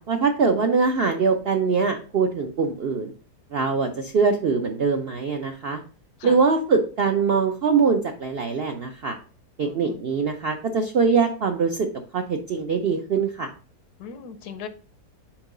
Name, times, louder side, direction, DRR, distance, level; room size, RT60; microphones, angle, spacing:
voice 1, 0.0-3.1 3.5-5.8 6.2-9.2 9.6-11.9 12.1-13.5, right 5 dB, 65° right, 5 dB, 0.6 m, -23 dB
voice 2, 9.6-10.0 14.0-14.7, left 7 dB, 75° left, 10 dB, 1.3 m, -38 dB
6.0 x 4.6 x 3.7 m, 0.40 s
omnidirectional pair, 1.7 m